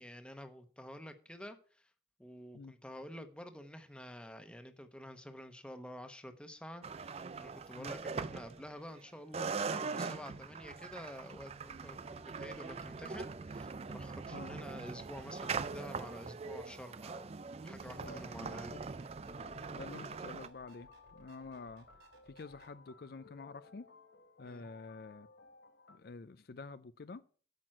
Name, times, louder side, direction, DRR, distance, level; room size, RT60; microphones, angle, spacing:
voice 1, 0.0-1.9 2.2-17.3 17.6-18.8 24.4-24.6, equal, 5° left, 1.0 m, -49 dB
sound 1, 6.8-9.0 9.3-20.5, right 4 dB, 35° right, 0.4 m, -42 dB
sound 2, 17.7-22.7, right 2 dB, 80° right, 3.3 m, -63 dB
voice 2, 17.8-18.8 19.7-21.9 22.3-23.9 24.4-25.3 25.9-27.2, left 4 dB, 60° left, 0.5 m, -49 dB
sound 3, 19.3-26.0, left 4 dB, 90° left, 0.9 m, -59 dB
8.9 x 6.1 x 7.5 m
head